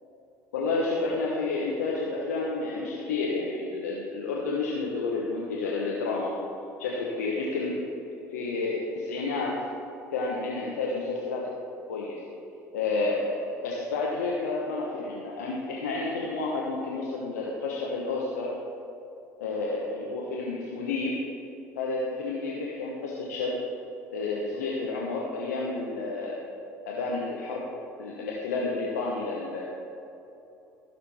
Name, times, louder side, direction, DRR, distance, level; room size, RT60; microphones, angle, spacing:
voice 1, 0.5-6.3 6.8-7.8 8.3-9.6 10.1-11.5 11.9-12.2 12.7-13.4 13.6-18.5 19.4-21.2 21.7-23.5 24.1-26.4 26.8-27.7 28.0-29.6, left 3 dB, 75° left, -3 dB, 1.1 m, -30 dB
14.5 x 6.7 x 4.3 m, 2.8 s
hypercardioid pair, 60°, 9 cm